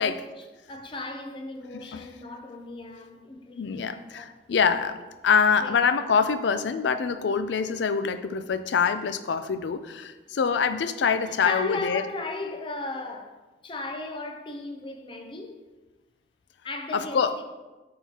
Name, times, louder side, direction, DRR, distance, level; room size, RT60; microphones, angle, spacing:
voice 1, 0.0-4.4 5.6-5.8 11.3-15.6 16.6-17.4, left 2 dB, 30° left, 0.6 m, -36 dB
voice 2, 3.6-12.0 16.9-17.3, left 6 dB, 80° left, 0.4 m, -25 dB
10.5 x 3.7 x 2.8 m
head